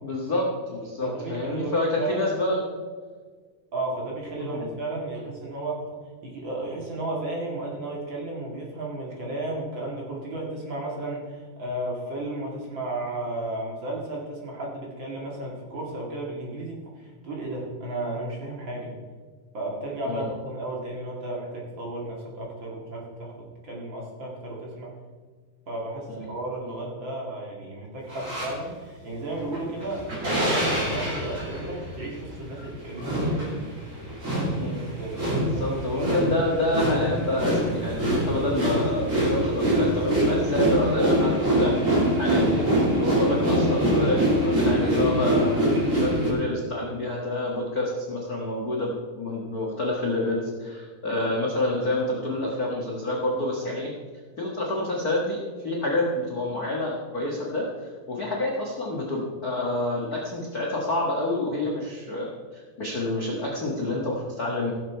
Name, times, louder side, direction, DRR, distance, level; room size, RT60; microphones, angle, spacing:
voice 1, 0.0-2.6 4.4-4.7 20.0-20.3 26.1-26.3 34.6-34.8 35.4-41.7 42.2-53.9 54.4-57.7 58.1-64.7, left 2 dB, 65° left, -3 dB, 0.9 m, -28 dB
voice 2, 1.0-2.3 3.7-5.8 6.2-18.9 19.5-24.9 25.7-33.5 34.6-36.3, right 2 dB, 40° right, -3 dB, 2.2 m, -34 dB
sound 1, 28.1-28.5 29.4-46.3, right 1 dB, 20° right, 3.0 m, -24 dB
17.0 x 7.6 x 4.6 m, 1.5 s
omnidirectional pair, 4.4 m